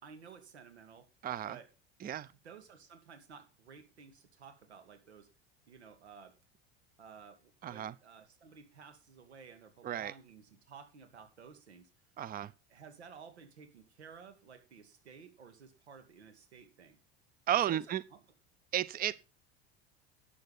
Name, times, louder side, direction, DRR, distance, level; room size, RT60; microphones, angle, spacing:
voice 1, 0.0-1.1 1.5-1.7 2.4-5.3 5.7-6.4 7.0-11.9 12.7-17.0 17.7-18.2, right 6 dB, 85° right, 2.5 m, -54 dB
voice 2, 1.2-1.6 2.0-2.3 7.6-7.9 9.8-10.1 12.2-12.5 17.5-18.0 18.7-19.1, right 11 dB, 25° right, 0.7 m, -33 dB
11.5 x 8.4 x 5.5 m
hypercardioid pair, 80°, 32 cm